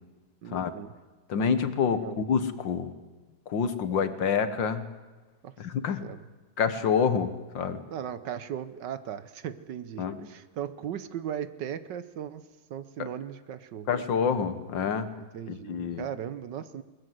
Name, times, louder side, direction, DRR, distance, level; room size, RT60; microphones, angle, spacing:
voice 1, 0.4-0.9 1.9-2.2 5.4-5.5 6.0-6.2 7.9-12.4 12.7-13.9 15.3-16.8, right 9 dB, 65° right, 13 dB, 1.4 m, -37 dB
voice 2, 1.3-2.9 3.5-4.8 5.6-6.0 6.6-7.8 10.0-10.2 13.0-13.1 13.9-15.1 15.5-16.0, left 6 dB, 70° left, 11 dB, 1.9 m, -27 dB
22.0 x 20.0 x 7.7 m, 1.2 s
omnidirectional pair, 2.2 m